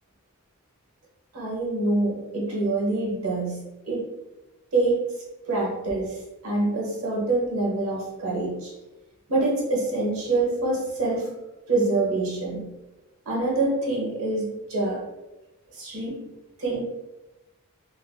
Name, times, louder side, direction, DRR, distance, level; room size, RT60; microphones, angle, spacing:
voice 1, 1.3-3.6 3.8-4.1 4.7-5.2 5.5-8.7 9.3-11.4 11.7-12.6 13.2-15.0 15.7-16.3 16.6-16.8, right 2 dB, 70° right, -3 dB, 0.8 m, -26 dB
3.3 x 2.1 x 2.2 m, 1.0 s
head